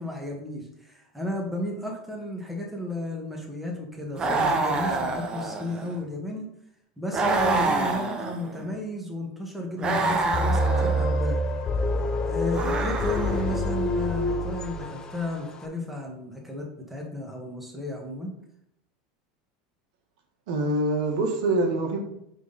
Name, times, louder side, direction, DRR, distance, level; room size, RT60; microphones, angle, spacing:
voice 1, 0.0-6.5 7.0-11.4 12.3-18.3, left 1 dB, 5° right, -1 dB, 1.7 m, -33 dB
sound 1, 4.2-5.9 7.1-8.7 9.8-11.1 12.5-13.6, right 3 dB, 25° right, 1.0 m, -27 dB
sound 2, 10.3-15.3, left 1 dB, 20° left, 0.8 m, -26 dB
voice 2, 20.5-22.0, right 2 dB, 75° right, 3 dB, 1.5 m, -25 dB
9.1 x 3.9 x 4.1 m, 0.76 s
supercardioid pair, 130°, 3 cm